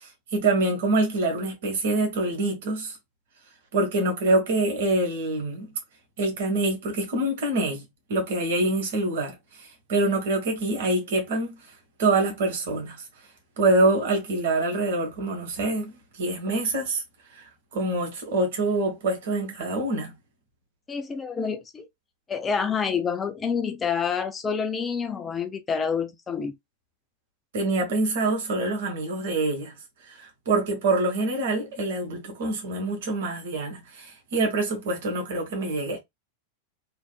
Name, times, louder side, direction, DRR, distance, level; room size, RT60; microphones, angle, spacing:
voice 1, 0.0-3.0 3.7-5.7 6.2-7.8 8.1-11.6 12.0-13.0 13.6-17.0 17.3-17.4 17.7-20.1 27.5-29.7 30.0-36.0, right 2 dB, 55° right, 1.4 m, -25 dB
voice 2, 20.9-21.9 22.3-26.5, left 6 dB, 20° left, 0.5 m, -28 dB
3.3 x 3.1 x 2.3 m
figure-of-eight pair, 90°, 0 cm